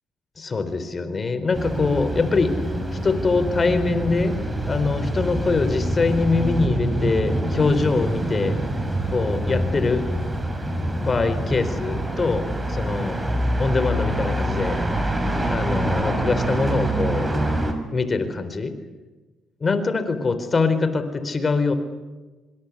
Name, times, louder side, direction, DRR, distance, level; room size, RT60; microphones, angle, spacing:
voice 1, 0.4-2.5 3.0-4.3 4.7-8.6 9.1-10.1 11.0-13.2 13.6-14.8 15.5-17.3 17.9-18.7 19.6-21.7, left 4 dB, 35° left, 10 dB, 4.3 m, -23 dB
sound 1, 1.5-17.7, right 1 dB, 15° right, 5.8 m, -25 dB
26.0 x 26.0 x 8.6 m, 1.2 s
cardioid pair, 90°, 0 cm